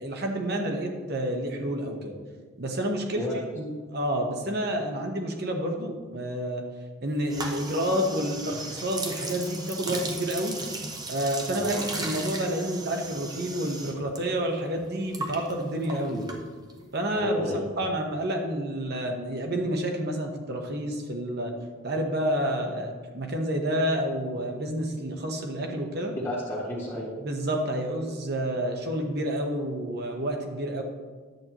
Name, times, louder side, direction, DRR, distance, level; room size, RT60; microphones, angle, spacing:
voice 1, 0.0-2.1 2.6-3.2 3.6-6.6 7.0-10.6 11.1-16.2 16.9-17.4 17.8-21.5 21.8-26.2 27.2-30.8, right 1 dB, 50° right, 2 dB, 1.1 m, -29 dB
sound 1, 7.3-14.2 14.5-16.9, right 2 dB, 20° right, 0.8 m, -36 dB
voice 2, 11.5-11.8 16.1-16.3 17.1-17.8 26.2-27.1, left 1 dB, 15° left, -8 dB, 1.4 m, -31 dB
10.5 x 8.0 x 3.0 m, 1.5 s
head